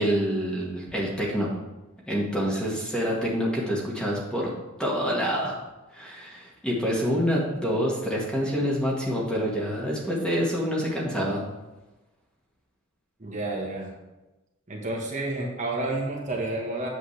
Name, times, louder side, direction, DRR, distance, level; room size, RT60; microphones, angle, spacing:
voice 1, 0.0-1.5 2.1-4.5 4.8-5.6 5.9-11.4, equal, 5° left, -4 dB, 1.6 m, -27 dB
voice 2, 13.2-13.9 14.7-16.9, right 2 dB, 35° right, -2 dB, 1.3 m, -30 dB
8.2 x 7.6 x 3.3 m, 1.1 s
head